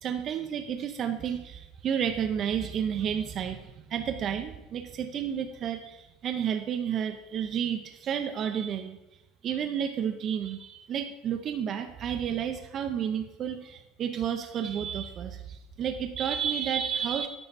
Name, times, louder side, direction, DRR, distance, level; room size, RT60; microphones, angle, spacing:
voice 1, 0.0-9.0 9.4-17.3, right 8 dB, 40° right, 5 dB, 0.6 m, -31 dB
9.1 x 5.7 x 4.0 m, 0.99 s
supercardioid pair, 125°, 0 cm